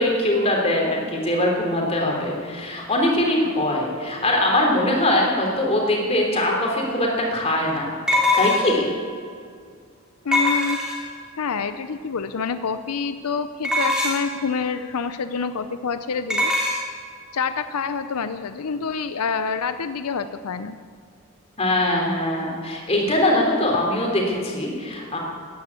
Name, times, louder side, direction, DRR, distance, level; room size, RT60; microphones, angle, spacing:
voice 1, 0.0-7.9 8.3-8.9 21.6-25.2, left 1 dB, 30° left, -1 dB, 3.1 m, -22 dB
sound 1, 8.1-8.9 10.3-11.2 13.6-14.4 16.3-16.8, left 2 dB, 5° right, 2.6 m, -22 dB
voice 2, 10.2-10.8 11.4-16.5 17.3-20.8, left 5 dB, 85° left, 10 dB, 0.6 m, -27 dB
15.0 x 10.5 x 8.3 m, 2.2 s
head